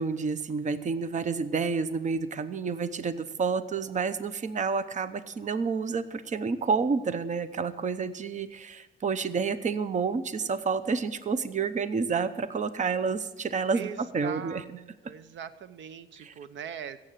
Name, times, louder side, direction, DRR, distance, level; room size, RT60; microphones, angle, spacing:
voice 1, 0.0-14.6 16.2-16.3, right 5 dB, 40° right, 13 dB, 0.8 m, -29 dB
voice 2, 13.7-17.0, right 8 dB, 70° right, 14 dB, 0.8 m, -41 dB
16.0 x 7.5 x 7.5 m, 1.1 s
cardioid pair, 90°, 20 cm